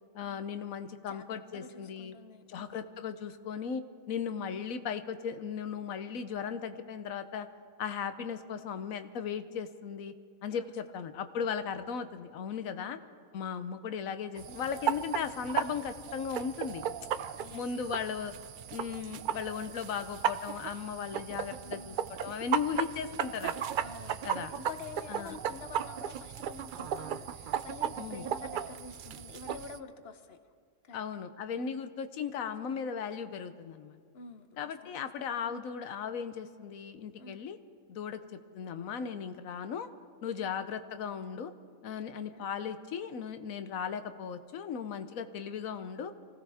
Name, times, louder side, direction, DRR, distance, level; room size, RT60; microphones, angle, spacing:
voice 1, 0.1-2.1 2.5-7.5 7.8-10.1 10.4-13.0 13.3-16.8 17.5-18.3 18.7-23.5 24.2-24.5 25.1-25.4 28.0-28.2 30.9-34.0 34.6-37.6 37.9-38.2 38.5-39.9 40.2-41.5 41.8-46.1, left 7 dB, 85° left, 10 dB, 1.2 m, -37 dB
voice 2, 1.5-2.9 10.5-11.0 12.7-13.0 17.4-17.8 21.6-22.2 23.8-30.4 30.8-31.0 31.6-31.8 34.1-35.1 35.4-35.6 37.2-37.4 40.4-40.6 42.0-42.5, left 4 dB, 55° left, 9 dB, 1.0 m, -49 dB
sound 1, 14.4-29.8, right 9 dB, 80° right, 0.4 m, -36 dB
25.0 x 16.5 x 3.5 m, 2.1 s
omnidirectional pair, 1.4 m